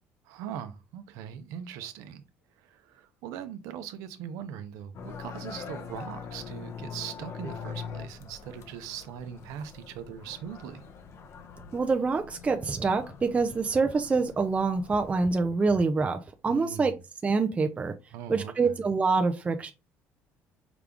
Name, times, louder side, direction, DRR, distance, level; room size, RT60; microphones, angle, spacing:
voice 1, 0.3-2.2 2.6-10.8 16.5-17.0 18.1-18.8, right 9 dB, 80° right, 0.7 m, -40 dB
sound 1, 4.9-15.3, left 6 dB, 55° left, 0.8 m, -43 dB
voice 2, 11.7-16.9 17.2-17.9 18.3-19.7, right 4 dB, 25° right, 0.5 m, -26 dB
4.9 x 2.3 x 3.5 m
supercardioid pair, 85°, 6 cm